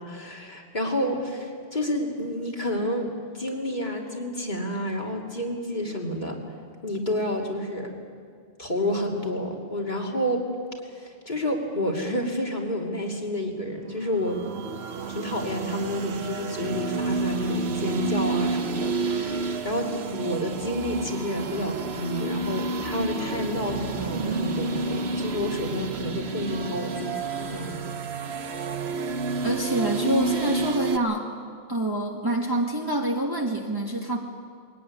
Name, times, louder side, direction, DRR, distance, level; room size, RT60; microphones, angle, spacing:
voice 1, 0.0-3.1 3.3-6.4 6.8-7.9 8.6-10.5 10.9-14.4 15.1-27.8, left 1 dB, 45° left, 0 dB, 3.0 m, -29 dB
sound 1, 14.1-31.0, right 4 dB, 75° right, 1.2 m, -30 dB
voice 2, 29.4-31.3 31.7-34.2, right 1 dB, 20° right, 0 dB, 1.7 m, -26 dB
22.0 x 17.5 x 9.7 m, 2.1 s
omnidirectional pair, 1.1 m